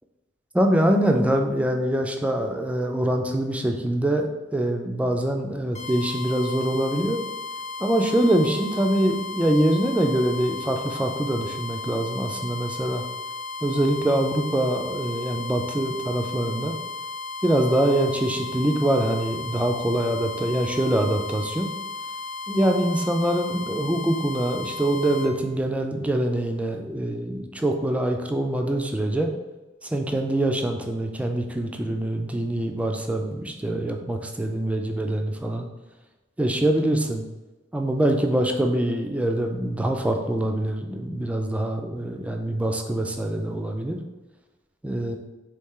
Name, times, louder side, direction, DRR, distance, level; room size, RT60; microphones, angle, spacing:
voice 1, 0.5-7.2 7.8-13.0 13.6-16.8 17.4-21.7 22.5-29.3 29.8-35.7 36.4-37.2 37.7-44.0 44.8-45.2, right 1 dB, 5° right, 3 dB, 0.4 m, -24 dB
sound 1, 5.7-25.3, left 3 dB, 40° left, 0.7 m, -35 dB
4.2 x 3.1 x 3.7 m, 1.2 s
head